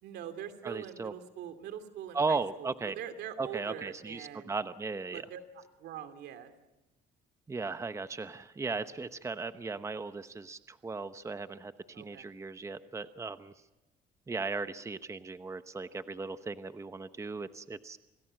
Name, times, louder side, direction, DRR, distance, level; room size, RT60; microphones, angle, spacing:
voice 1, 0.0-4.6 5.1-6.5 9.0-9.1 11.9-12.3, right 9 dB, 80° right, 8 dB, 2.8 m, -43 dB
voice 2, 0.6-1.1 2.1-2.9 3.4-5.2 7.5-13.5 14.3-18.0, right 4 dB, 15° right, 11 dB, 0.9 m, -37 dB
28.0 x 19.0 x 7.7 m, 1.0 s
cardioid pair, 110°, 17 cm